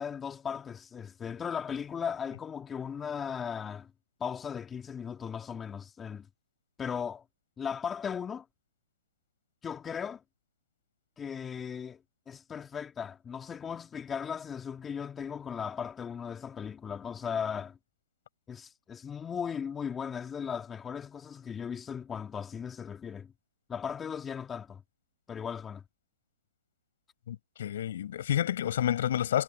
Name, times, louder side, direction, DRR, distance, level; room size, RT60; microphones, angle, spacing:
voice 1, 0.0-3.9 4.2-6.3 6.8-7.2 7.6-8.5 9.6-10.2 11.2-12.0 12.3-17.8 18.5-23.3 23.7-24.8 25.3-25.8, left 7 dB, 15° left, 2.6 m, -37 dB
voice 2, 27.3-29.4, left 11 dB, 60° left, 6.5 m, -29 dB
hypercardioid pair, 130°, 0 cm